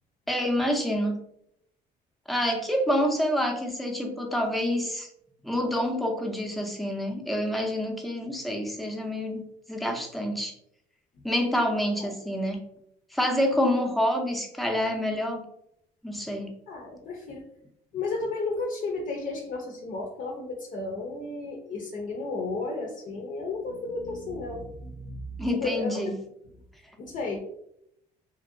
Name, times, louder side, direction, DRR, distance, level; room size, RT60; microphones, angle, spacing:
voice 1, 0.3-1.2 2.3-5.1 5.4-10.5 11.2-12.6 13.1-15.4 16.0-16.5 25.4-26.1, equal, ahead, 2 dB, 0.5 m, -27 dB
voice 2, 16.7-17.4 17.9-25.9 27.0-27.4, left 3 dB, 50° left, 1 dB, 0.5 m, -33 dB
2.8 x 2.6 x 2.5 m, 0.75 s
cardioid pair, 110°, 17 cm